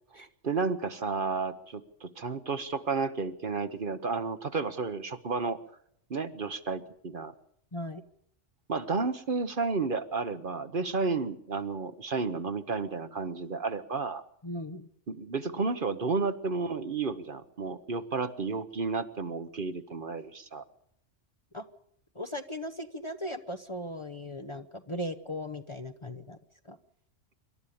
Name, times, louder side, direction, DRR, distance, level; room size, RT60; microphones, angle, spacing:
voice 1, 0.1-5.6 6.1-7.3 8.7-14.2 15.1-20.6, right 4 dB, 45° right, 11 dB, 1.1 m, -32 dB
voice 2, 7.7-8.0 14.4-14.9 21.5-21.6 22.1-26.4 26.6-26.8, left 1 dB, 30° left, 8 dB, 0.9 m, -38 dB
26.0 x 12.5 x 8.6 m, 0.69 s
omnidirectional pair, 1.2 m